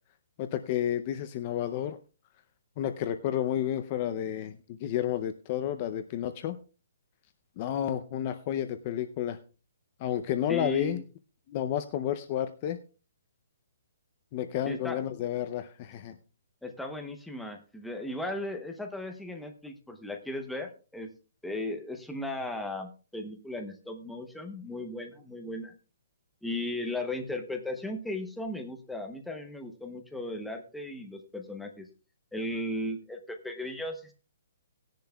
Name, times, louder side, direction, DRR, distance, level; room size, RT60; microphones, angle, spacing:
voice 1, 0.4-2.0 2.8-6.6 7.6-9.4 10.0-11.0 11.5-12.8 14.3-16.2, left 10 dB, 25° left, 10 dB, 0.5 m, -31 dB
voice 2, 10.5-11.0 14.7-15.0 16.6-21.1 21.4-25.7 26.4-31.9 32.3-34.1, left 1 dB, ahead, 4 dB, 0.8 m, -36 dB
18.0 x 10.5 x 2.3 m, 0.34 s
hypercardioid pair, 175°, 0 cm